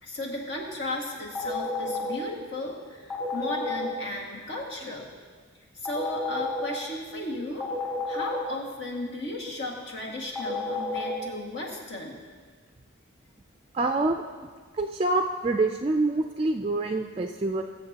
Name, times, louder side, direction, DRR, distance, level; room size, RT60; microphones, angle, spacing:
voice 1, 0.0-5.1 5.7-7.7 8.1-12.2, left 1 dB, 65° left, -2 dB, 2.0 m, -35 dB
sound 1, 1.3-2.1 3.1-3.9 5.8-6.6 7.6-8.4 10.3-11.1, left 2 dB, 10° left, 1.7 m, -30 dB
voice 2, 13.7-14.2 14.8-17.6, right 2 dB, 30° right, 5 dB, 0.3 m, -26 dB
22.0 x 7.5 x 2.9 m, 1.5 s
head